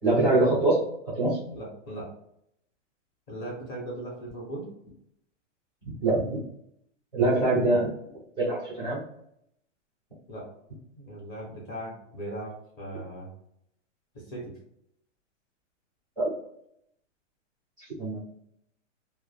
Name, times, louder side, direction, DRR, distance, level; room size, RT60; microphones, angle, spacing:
voice 1, 0.0-0.8 1.2-1.4 5.9-6.3 7.1-7.9 8.4-9.0 16.2-16.3 17.8-18.2, right 2 dB, ahead, -10 dB, 0.3 m, -23 dB
voice 2, 1.5-2.1 3.3-4.7 10.3-10.4 11.0-13.3 14.1-14.5, right 1 dB, 20° left, -3 dB, 0.8 m, -38 dB
2.2 x 2.0 x 3.2 m, 0.74 s
hypercardioid pair, 155°, 38 cm